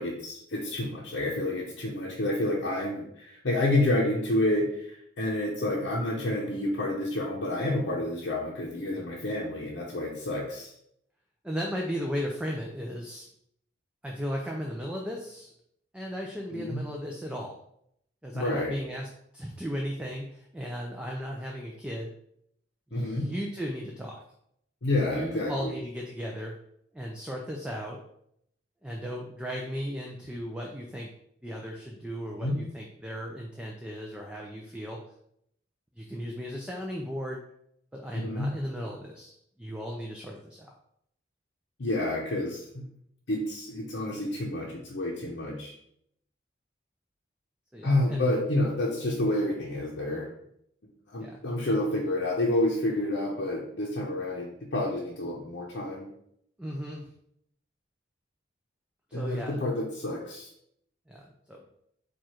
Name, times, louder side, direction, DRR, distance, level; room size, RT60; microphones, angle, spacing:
voice 1, 0.0-10.7 16.5-16.8 18.3-18.7 22.9-23.3 24.8-25.7 32.4-32.6 38.1-38.5 41.8-42.8 43.3-45.7 47.8-50.3 51.1-56.1 59.1-60.5, left 1 dB, 75° left, -4 dB, 0.8 m, -29 dB
voice 2, 11.4-13.2 14.0-15.5 15.9-17.6 18.2-19.1 19.3-22.1 22.9-24.2 25.1-26.5 26.9-28.0 28.8-31.1 31.4-35.0 36.0-37.4 37.9-39.3 39.6-40.7 47.7-48.3 51.2-51.4 56.6-57.1 59.1-59.6 61.1-61.6, equal, 5° right, -1 dB, 0.4 m, -36 dB
4.6 x 2.5 x 4.3 m, 0.73 s
head